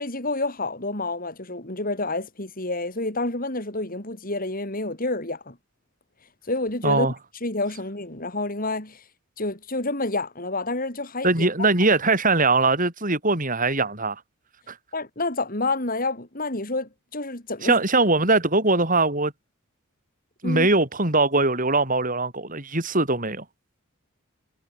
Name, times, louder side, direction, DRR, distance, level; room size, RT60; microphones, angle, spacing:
voice 1, 0.0-5.6 6.5-7.1 7.4-9.0 9.4-11.7 14.9-17.8 20.4-20.7, left 2 dB, 40° left, 5.4 m, -29 dB
voice 2, 6.8-7.1 11.2-14.2 14.7-14.8 17.6-19.3 20.4-23.4, right 3 dB, 40° right, 7.2 m, -21 dB
head